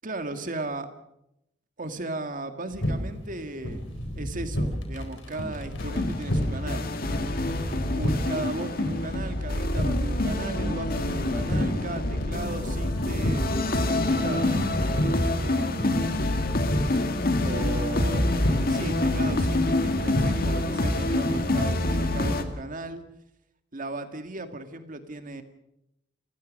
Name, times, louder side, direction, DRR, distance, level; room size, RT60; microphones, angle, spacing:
voice 1, 0.0-0.9 1.8-3.8 4.1-6.9 7.8-13.4 13.9-16.0 17.4-23.0 23.7-25.4, right 2 dB, 45° right, 8 dB, 2.0 m, -36 dB
sound 1, 2.7-21.8, equal, 85° left, 4.2 m, -32 dB
sound 2, 5.8-22.4, left 2 dB, 55° left, 1.9 m, -27 dB
29.5 x 15.5 x 6.5 m, 0.83 s
head